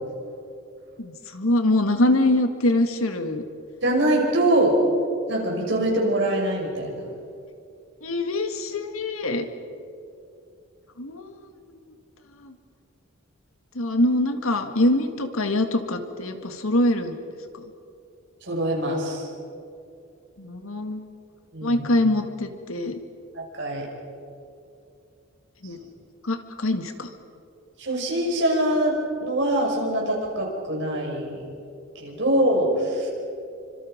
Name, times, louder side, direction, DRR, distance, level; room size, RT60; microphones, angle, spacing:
voice 1, 1.0-3.4 8.0-9.5 11.0-11.4 12.4-12.5 13.8-17.2 20.4-21.0 21.6-22.9 25.6-25.8 26.2-27.1, left 1 dB, 80° left, 6 dB, 1.9 m, -24 dB
voice 2, 3.8-4.8 5.3-7.0 18.4-19.3 21.5-21.9 23.3-23.9 27.8-31.3 32.0-33.1, right 1 dB, 55° right, -1 dB, 6.0 m, -23 dB
28.5 x 25.5 x 5.2 m, 2.5 s
head